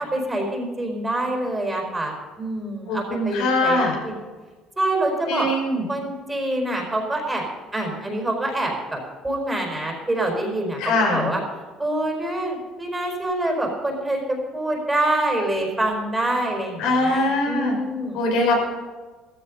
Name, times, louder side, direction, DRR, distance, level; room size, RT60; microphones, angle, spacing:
voice 1, 0.0-4.2 4.8-5.5 5.9-7.5 7.7-11.4 11.8-18.2, right 1 dB, 10° right, 2 dB, 4.7 m, -26 dB
voice 2, 2.9-4.0 5.3-5.9 10.8-11.3 16.8-17.8 18.1-18.6, left 2 dB, 85° left, 0 dB, 5.7 m, -22 dB
14.5 x 14.0 x 5.4 m, 1.3 s
cardioid pair, 115°, 0 cm